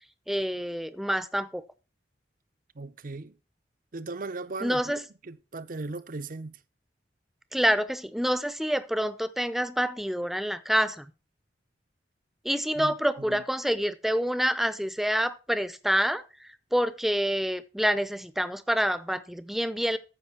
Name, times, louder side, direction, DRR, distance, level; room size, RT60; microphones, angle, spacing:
voice 1, 0.3-1.6 4.6-5.0 7.5-11.1 12.4-20.0, equal, ahead, 0.7 m, -27 dB
voice 2, 2.8-3.3 3.9-6.6 12.8-13.4, right 3 dB, 50° right, 0.7 m, -38 dB
14.0 x 5.4 x 4.4 m
head